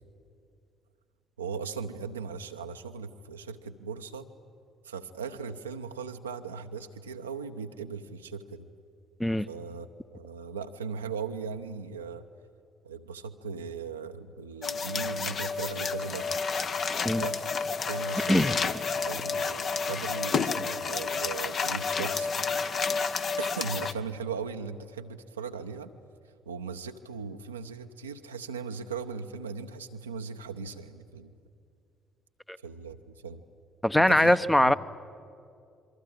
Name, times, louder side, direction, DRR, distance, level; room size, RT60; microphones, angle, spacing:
voice 1, 1.4-4.3 4.8-8.7 9.5-12.2 12.8-16.4 17.0-17.6 17.9-18.7 19.0-22.4 23.4-25.9 26.5-31.3 32.6-33.4 33.9-34.7, right 5 dB, 80° right, 6 dB, 0.8 m, -38 dB
sound 1, 14.6-23.9, left 5 dB, 45° left, 1.0 m, -30 dB
voice 2, 33.8-34.7, left 1 dB, 10° left, 13 dB, 0.9 m, -22 dB
27.5 x 23.0 x 8.7 m, 2.4 s
figure-of-eight pair, 50°, 0 cm